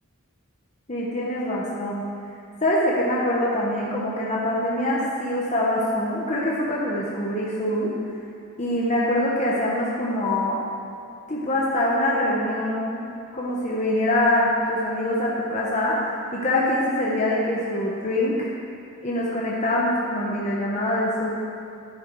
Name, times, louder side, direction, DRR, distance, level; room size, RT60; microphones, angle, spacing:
voice 1, 0.9-2.0 2.6-7.9 8.6-10.6 11.3-13.0 13.3-18.5 19.0-21.3, left 1 dB, 30° left, -5 dB, 1.2 m, -24 dB
11.0 x 10.0 x 4.8 m, 2.5 s
head